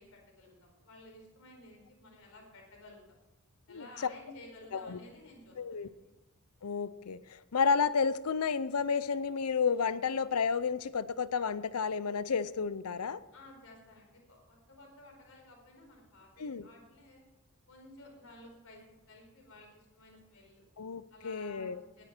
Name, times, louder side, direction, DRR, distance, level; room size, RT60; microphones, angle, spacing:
voice 1, 0.0-3.0 3.7-6.1 13.3-17.2 17.7-20.6 21.1-22.0, left 2 dB, 65° left, 0 dB, 4.5 m, -54 dB
voice 2, 5.6-5.9 6.6-13.2 16.4-16.7 20.8-21.8, left 5 dB, 80° left, 16 dB, 0.6 m, -31 dB
19.0 x 9.1 x 4.5 m, 1.0 s
head